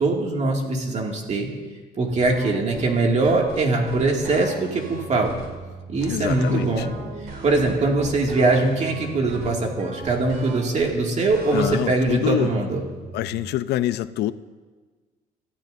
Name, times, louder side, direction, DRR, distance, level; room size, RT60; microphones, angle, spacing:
voice 1, 0.0-1.5 2.0-5.3 5.9-6.9 7.4-12.8, right 3 dB, 40° right, 1 dB, 2.3 m, -22 dB
sound 1, 2.1-13.5, right 3 dB, 65° right, 2.6 m, -38 dB
voice 2, 6.1-6.8 11.5-12.5 13.1-14.3, left 13 dB, 75° left, 14 dB, 0.6 m, -25 dB
25.5 x 14.0 x 2.7 m, 1.4 s
cardioid pair, 110°, 17 cm